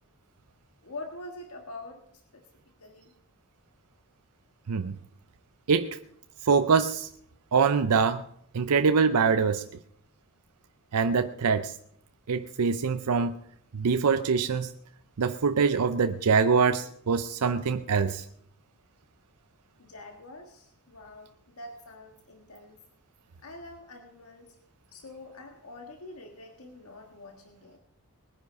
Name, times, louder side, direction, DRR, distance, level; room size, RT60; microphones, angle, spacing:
voice 1, 0.8-2.4 2.8-3.1 19.8-22.8 23.4-24.5 24.9-27.8, left 2 dB, 75° left, 1.6 m, -45 dB
voice 2, 5.7-6.0 6.4-7.1 7.5-8.2 8.5-9.6 10.9-11.7 12.3-13.4 13.7-14.7 15.2-18.2, right 5 dB, 85° right, 0.6 m, -24 dB
20.5 x 9.7 x 5.3 m
head